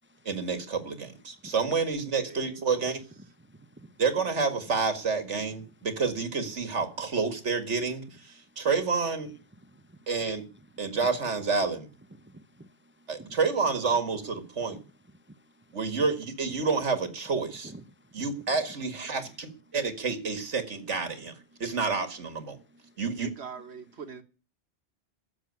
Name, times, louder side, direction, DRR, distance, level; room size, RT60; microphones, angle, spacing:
voice 1, 0.3-3.0 4.0-8.0 8.6-9.3 10.1-10.4 10.8-11.9 13.1-14.8 15.7-17.7 18.1-19.5 19.7-21.3 21.6-22.6 23.0-23.3, right 4 dB, 90° right, 2.2 m, -29 dB
voice 2, 2.3-3.0 23.0-24.2, right 6 dB, 70° right, 1.7 m, -43 dB
voice 3, 3.5-3.9 9.6-9.8 10.3-10.4 10.9-11.1 12.2-12.9 13.2-13.4 14.7-14.8 17.6-17.8 22.6-22.9, equal, 15° right, 0.5 m, -49 dB
12.5 x 7.6 x 9.7 m
omnidirectional pair, 1.2 m